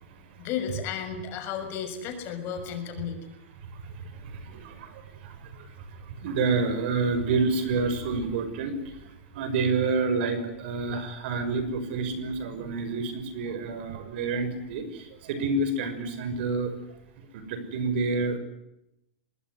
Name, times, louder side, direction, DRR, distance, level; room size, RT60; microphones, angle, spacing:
voice 1, 0.4-3.3, left 7 dB, 35° left, 6 dB, 6.5 m, -33 dB
voice 2, 4.2-4.9 5.2-5.7 6.2-8.8 9.3-16.7 17.3-18.4, right 3 dB, 55° right, 11 dB, 6.1 m, -28 dB
26.0 x 21.0 x 9.5 m, 0.82 s
supercardioid pair, 145°, 7 cm